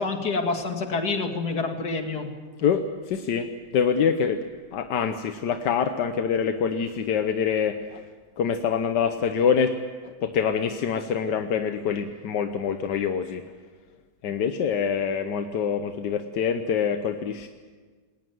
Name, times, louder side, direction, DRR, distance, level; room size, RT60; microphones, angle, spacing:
voice 1, 0.0-2.3, left 3 dB, 70° left, 4 dB, 2.7 m, -27 dB
voice 2, 2.6-4.4 4.7-8.0 8.4-9.8 10.0-13.4 14.2-17.5, left 7 dB, 90° left, 7 dB, 1.6 m, -25 dB
21.0 x 18.5 x 9.3 m, 1.5 s
omnidirectional pair, 1.8 m